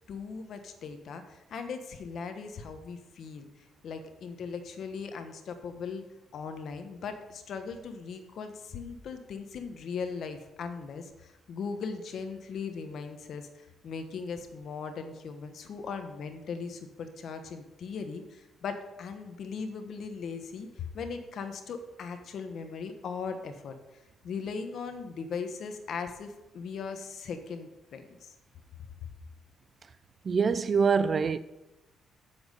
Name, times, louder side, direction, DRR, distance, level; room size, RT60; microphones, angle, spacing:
voice 1, 0.1-6.0 6.3-23.7 24.2-28.3, left 5 dB, 65° left, 1.2 m, -39 dB
voice 2, 30.2-31.4, right 5 dB, 40° right, 0.5 m, -24 dB
7.9 x 7.1 x 5.4 m
cardioid pair, 90°, 0 cm